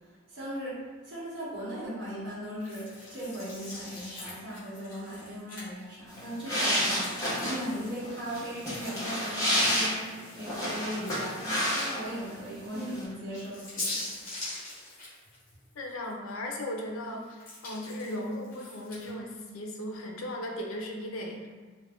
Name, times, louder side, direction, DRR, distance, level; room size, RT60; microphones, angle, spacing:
voice 1, 0.3-14.1, equal, 60° right, -10 dB, 0.9 m, -38 dB
sound 1, 2.6-6.0 6.5-11.7 12.1-12.2 13.1-16.1 16.5-19.1, left 2 dB, 45° left, 1.1 m, -43 dB
sound 2, 6.1-12.3 12.5-13.0, equal, 15° left, 0.8 m, -30 dB
voice 2, 15.8-21.5, left 1 dB, 85° left, 1 dB, 0.5 m, -37 dB
2.4 x 2.1 x 3.4 m, 1.4 s
head